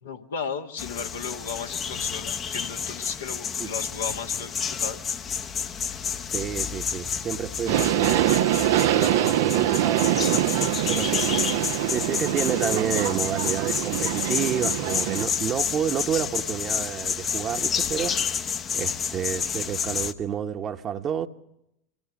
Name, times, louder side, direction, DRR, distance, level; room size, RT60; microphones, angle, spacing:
voice 1, 0.0-5.0, left 6 dB, 75° left, 1.5 m, -35 dB
sound 1, 0.8-20.1, left 7 dB, 30° left, 0.9 m, -30 dB
voice 2, 6.3-11.5 11.9-18.5 18.7-21.3, right 8 dB, 35° right, 1.2 m, -30 dB
Subway metro underground, 7.7-15.2, right 13 dB, 65° right, 0.7 m, -24 dB
25.0 x 16.5 x 7.2 m
figure-of-eight pair, 75°, 0 cm